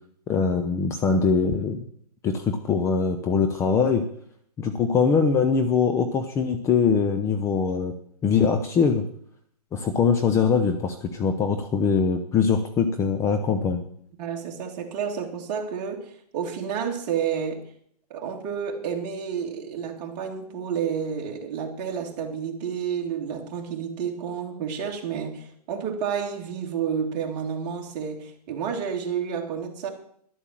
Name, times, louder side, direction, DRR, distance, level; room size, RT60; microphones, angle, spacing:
voice 1, 0.3-1.8 2.2-4.0 4.6-7.9 8.2-9.1 9.7-13.8, left 5 dB, 15° left, 8 dB, 0.7 m, -22 dB
voice 2, 14.2-17.7 18.1-29.9, right 7 dB, 30° right, 1 dB, 2.5 m, -30 dB
12.0 x 8.3 x 7.4 m, 0.65 s
hypercardioid pair, 145°, 20 cm